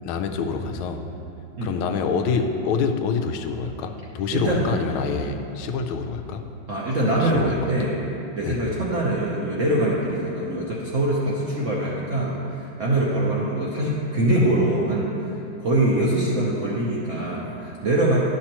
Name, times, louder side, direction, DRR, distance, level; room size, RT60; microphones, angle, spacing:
voice 1, 0.0-1.0 1.6-6.4 7.2-7.6 8.5-8.6, left 5 dB, 85° left, 6 dB, 1.4 m, -26 dB
voice 2, 4.3-4.7 6.7-8.0 8.3-15.1 15.6-18.2, right 1 dB, 55° right, -5 dB, 0.9 m, -23 dB
11.0 x 6.1 x 2.9 m, 2.8 s
omnidirectional pair, 2.2 m